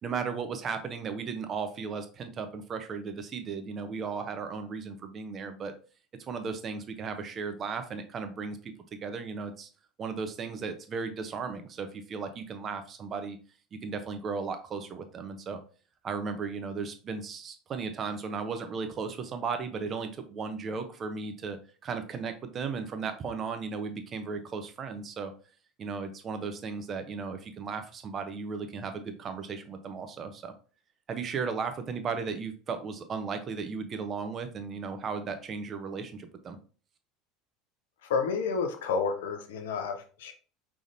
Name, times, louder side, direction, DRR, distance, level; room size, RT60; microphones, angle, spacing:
voice 1, 0.0-5.7 6.3-8.6 9.0-9.7 10.0-13.4 13.7-15.6 16.0-25.3 25.8-30.5 31.1-36.6, right 5 dB, 35° right, 7 dB, 0.8 m, -35 dB
voice 2, 38.0-40.3, left 5 dB, 65° left, 5 dB, 0.8 m, -30 dB
4.9 x 3.5 x 2.7 m, 0.38 s
figure-of-eight pair, 70°, 0 cm